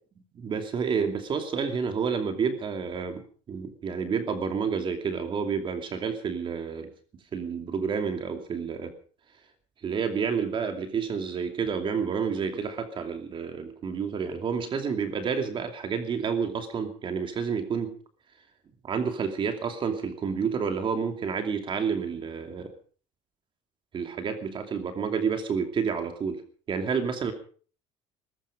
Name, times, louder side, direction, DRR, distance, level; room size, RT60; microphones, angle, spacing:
voice 1, 0.3-6.9 7.3-8.9 9.8-17.9 18.8-22.7 23.9-26.4 26.7-27.3, right 6 dB, 40° right, 6 dB, 2.7 m, -29 dB
18.5 x 15.5 x 5.1 m, 0.43 s
cardioid pair, 120°, 13 cm